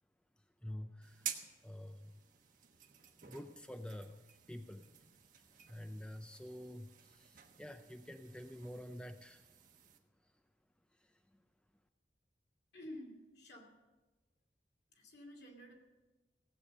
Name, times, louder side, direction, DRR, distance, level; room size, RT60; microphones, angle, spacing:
voice 1, 0.6-1.3 1.6-2.1 3.2-4.9 5.7-9.4, left 1 dB, 5° left, 7 dB, 0.4 m, -48 dB
sound 1, 1.0-10.0, right 9 dB, 50° right, 1.1 m, -51 dB
voice 2, 12.7-13.8 14.9-15.7, left 1 dB, 65° left, 1 dB, 2.7 m, -51 dB
16.5 x 8.4 x 6.5 m, 1.2 s
head